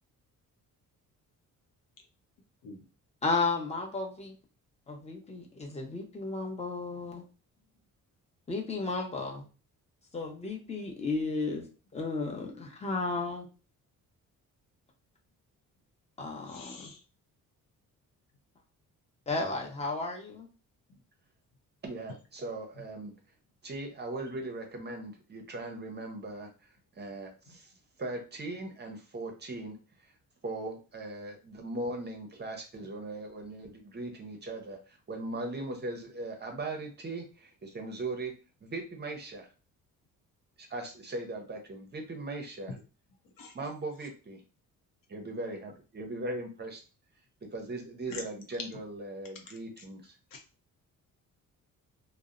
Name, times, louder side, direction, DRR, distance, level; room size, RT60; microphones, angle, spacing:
voice 1, 3.2-4.3 4.9-7.2 8.5-9.4 10.1-11.7 11.9-13.5 16.2-16.9 19.3-20.5, left 3 dB, 20° left, 0 dB, 0.7 m, -33 dB
voice 2, 16.5-16.9 43.4-43.5 50.3-50.4, left 3 dB, 80° left, 4 dB, 0.7 m, -47 dB
voice 3, 21.8-23.1 23.6-27.7 28.0-29.8 30.0-30.1 30.4-38.3 38.6-39.5 40.6-42.8 43.5-44.4 45.1-46.8 47.5-50.2, right 2 dB, 30° right, 3 dB, 0.6 m, -39 dB
2.7 x 2.0 x 2.4 m, 0.34 s
cardioid pair, 110°, 33 cm